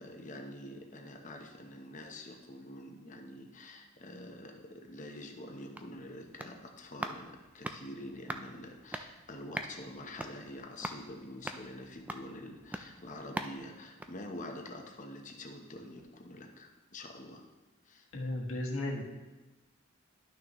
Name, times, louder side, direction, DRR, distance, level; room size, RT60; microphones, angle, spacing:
voice 1, 0.0-17.5 17.8-18.1, left 1 dB, 35° left, 3 dB, 0.9 m, -46 dB
sound 1, 5.7-14.9 15.3-15.4, right 1 dB, 5° right, 0.3 m, -44 dB
voice 2, 18.1-19.0, left 1 dB, 70° left, -1 dB, 1.4 m, -34 dB
11.5 x 6.1 x 3.1 m, 1.1 s
head